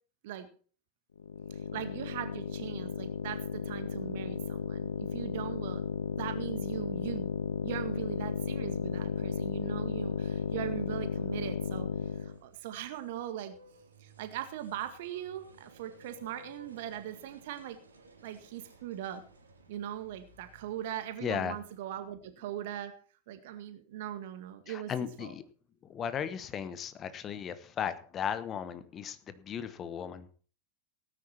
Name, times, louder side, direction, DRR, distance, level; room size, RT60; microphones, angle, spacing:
sound 1, 1.2-12.4, left 7 dB, 70° left, 0.9 m, -34 dB
voice 1, 1.7-5.8 6.2-7.3 7.6-11.9 12.2-13.6 14.0-17.8 18.2-19.2 19.7-23.0 23.3-24.9 25.2-25.3, right 11 dB, 50° right, 9 dB, 1.9 m, -40 dB
sound 2, 10.6-21.8, right 2 dB, 70° right, 2.7 m, -57 dB
voice 2, 21.2-21.6 24.7-25.4 25.9-30.3, left 8 dB, 25° left, 13 dB, 1.2 m, -36 dB
18.0 x 9.7 x 4.4 m, 0.42 s
figure-of-eight pair, 90°, 0 cm